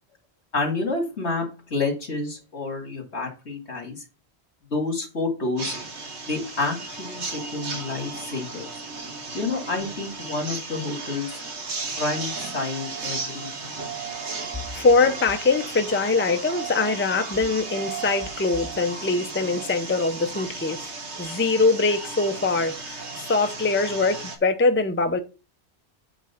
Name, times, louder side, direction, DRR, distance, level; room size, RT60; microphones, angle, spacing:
voice 1, 0.5-4.0 4.7-5.8 6.2-8.7 9.3-11.4 12.0-13.9, left 3 dB, 80° left, 2.6 m, -29 dB
sound 1, 5.6-24.4, right 4 dB, 85° right, 1.7 m, -35 dB
voice 2, 14.5-20.9 21.2-25.2, left 3 dB, 15° left, 0.6 m, -23 dB
8.1 x 3.7 x 5.7 m
omnidirectional pair, 1.1 m